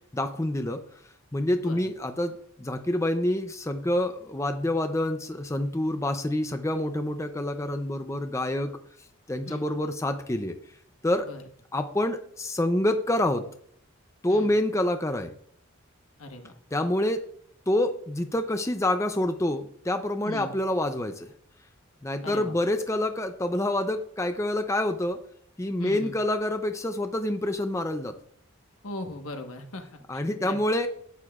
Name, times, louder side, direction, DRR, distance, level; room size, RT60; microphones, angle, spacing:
voice 1, 0.1-0.8 1.3-8.7 9.3-10.5 11.0-11.3 11.7-13.4 14.2-15.3 16.7-17.2 17.7-21.3 22.0-25.2 25.6-28.1 30.1-30.9, left 1 dB, 15° left, 7 dB, 0.5 m, -27 dB
voice 2, 1.6-1.9 9.4-9.7 11.2-11.4 14.3-14.5 16.2-16.6 20.2-20.5 22.2-22.6 25.8-26.2 28.8-30.6, left 2 dB, 80° left, 5 dB, 1.3 m, -39 dB
12.5 x 8.9 x 2.4 m, 0.63 s
head